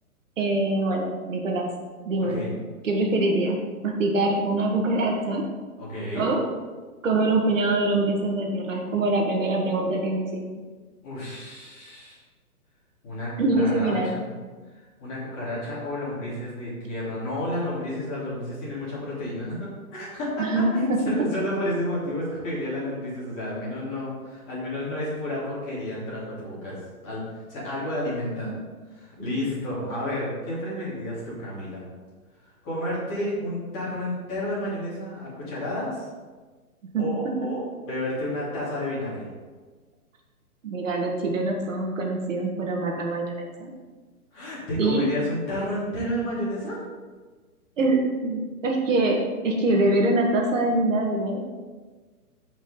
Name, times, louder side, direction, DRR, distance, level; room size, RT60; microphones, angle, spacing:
voice 1, 0.4-1.7 2.0-2.4 2.8-3.6 3.8-5.4 6.1-6.5 7.0-10.4 13.4-14.2 20.4-20.7 28.4-28.5 36.9-37.1 40.6-43.7 44.8-45.1 47.8-51.4, right 2 dB, 55° right, 1 dB, 1.6 m, -24 dB
voice 2, 5.8-6.3 11.0-12.2 13.0-14.3 15.0-20.5 20.7-26.8 27.0-27.2 27.5-28.5 28.9-31.9 32.6-36.1 37.0-39.3 44.3-46.8, left 1 dB, 20° left, -8 dB, 3.1 m, -31 dB
13.5 x 5.3 x 3.8 m, 1.4 s
hypercardioid pair, 165°, 45 cm